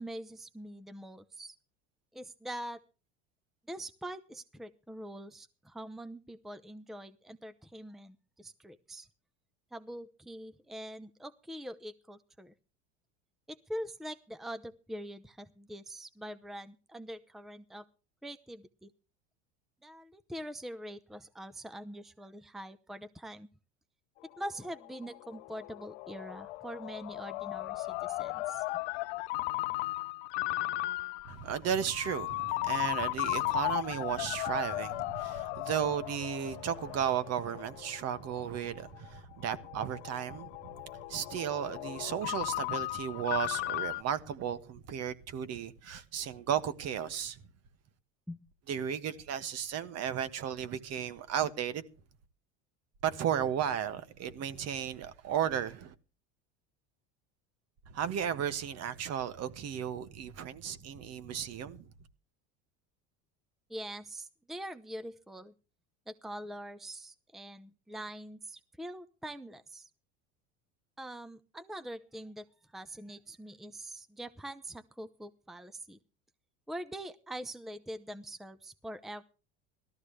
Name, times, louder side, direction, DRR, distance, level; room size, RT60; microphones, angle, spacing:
voice 1, 0.0-1.6 2.1-2.8 3.7-9.1 9.7-12.5 13.5-17.9 18.2-18.9 19.8-23.5 24.4-28.6 48.3-48.4 63.7-65.5 66.1-69.9 71.0-72.5 72.7-76.0 76.7-79.2, right 1 dB, ahead, 0.8 m, -44 dB
Ringtone, 24.2-44.0, left 20 dB, 75° left, 0.7 m, -36 dB
voice 2, 31.3-40.5 41.1-47.4 48.7-51.8 53.0-55.9 57.9-61.9, right 9 dB, 50° right, 1.5 m, -34 dB
17.5 x 13.5 x 3.3 m
supercardioid pair, 100°, 33 cm